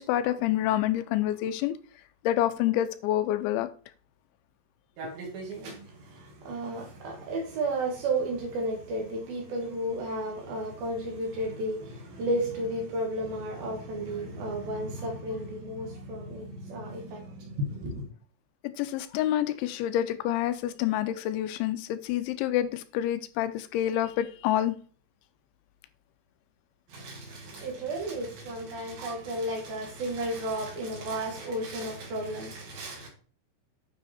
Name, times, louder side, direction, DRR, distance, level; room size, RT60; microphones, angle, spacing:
voice 1, 0.0-1.8 2.2-3.7 18.8-24.7, left 12 dB, 80° left, 2.9 m, -27 dB
voice 2, 5.0-18.1 26.9-33.1, right 1 dB, 60° right, 3.0 m, -33 dB
9.8 x 6.4 x 4.3 m
omnidirectional pair, 5.4 m